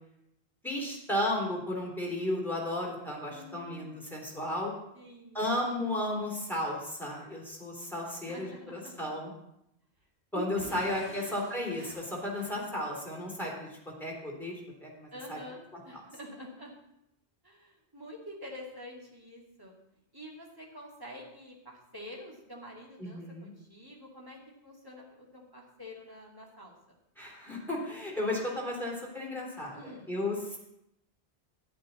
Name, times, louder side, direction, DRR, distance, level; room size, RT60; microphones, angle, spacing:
voice 1, 0.6-4.7 5.3-9.3 10.3-15.4 23.0-23.5 27.2-30.6, left 1 dB, ahead, -3 dB, 3.4 m, -34 dB
voice 2, 3.3-4.0 4.9-5.4 7.3-7.4 8.1-9.2 10.3-11.6 15.1-16.7 17.4-19.7 20.1-26.7 29.7-30.1, equal, 20° right, -3 dB, 2.5 m, -47 dB
Explosion / Shatter, 10.6-13.3, right 2 dB, 70° right, 2.1 m, -50 dB
11.5 x 10.0 x 4.2 m, 0.81 s
omnidirectional pair, 1.0 m